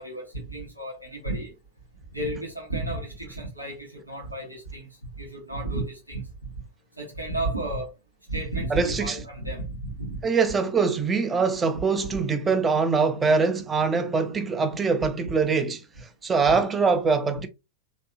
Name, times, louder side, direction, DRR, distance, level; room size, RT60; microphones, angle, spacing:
voice 1, 0.0-1.5 2.1-4.9 5.2-6.2 7.0-7.9 8.3-10.2 12.1-12.2 16.4-16.5, right 2 dB, 85° right, 1.2 m, -32 dB
voice 2, 8.7-9.2 10.2-17.5, right 4 dB, 20° right, 0.6 m, -23 dB
3.5 x 3.0 x 2.7 m
figure-of-eight pair, 90°, 0 cm